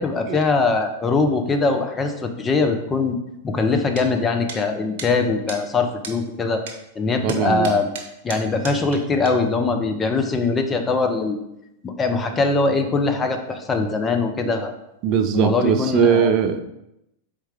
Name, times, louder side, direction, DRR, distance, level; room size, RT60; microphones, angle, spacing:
voice 1, 0.0-3.2 3.4-6.6 7.0-7.9 8.2-11.4 11.8-14.7 15.3-16.3, left 3 dB, 20° left, 6 dB, 0.5 m, -22 dB
sound 1, 4.0-4.1 4.5-4.6 5.0-5.1 5.5-5.6 6.0-6.2 6.7-6.8 7.3-9.0 9.3-9.4, right 5 dB, 60° right, 0.8 m, -34 dB
voice 2, 7.2-7.7 15.0-16.6, right 8 dB, 45° right, 8 dB, 0.4 m, -20 dB
4.4 x 3.4 x 3.5 m, 0.85 s
hypercardioid pair, 95°, 0 cm